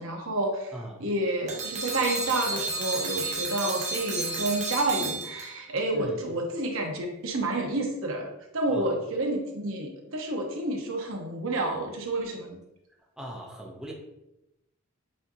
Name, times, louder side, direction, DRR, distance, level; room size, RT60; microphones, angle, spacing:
voice 1, 0.0-0.7 1.0-12.6, right 2 dB, 70° right, 2 dB, 0.9 m, -29 dB
voice 2, 0.7-1.0 5.9-6.2 8.7-8.9 13.2-13.9, right 1 dB, 5° right, -2 dB, 0.6 m, -39 dB
sound 1, 1.5-5.8, right 3 dB, 35° right, 0.9 m, -32 dB
7.3 x 2.8 x 2.7 m, 0.89 s
head